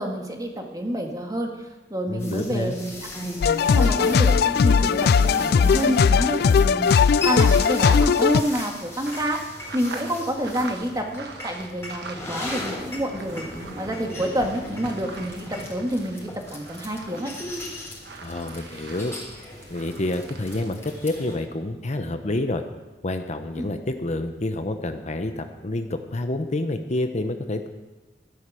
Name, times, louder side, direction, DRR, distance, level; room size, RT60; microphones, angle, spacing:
voice 1, 0.0-1.7 1.9-2.9 3.8-4.4 4.6-7.0 7.2-13.5 13.8-17.3 23.6-23.7, equal, 20° right, 2 dB, 1.9 m, -28 dB
voice 2, 2.1-2.8 18.2-19.1 19.7-22.6 23.0-27.7, left 2 dB, 40° left, 7 dB, 0.9 m, -28 dB
sound 1, 2.2-21.3, left 1 dB, 15° left, 3.8 m, -36 dB
sound 2, 3.4-8.4, left 6 dB, 60° left, 0.3 m, -18 dB
sound 3, 7.5-12.6 12.9-21.4, right 4 dB, 65° right, 1.4 m, -43 dB
13.5 x 11.0 x 6.3 m, 1.2 s
head